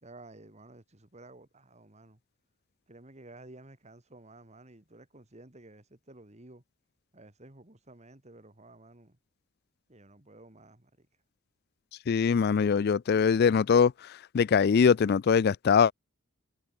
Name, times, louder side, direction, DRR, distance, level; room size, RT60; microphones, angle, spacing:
voice 1, 0.0-2.2 2.9-6.6 7.1-9.2 9.9-11.1, right 2 dB, 35° right, 2.3 m, -53 dB
voice 2, 12.1-13.9 14.3-15.9, left 6 dB, 50° left, 0.4 m, -22 dB
head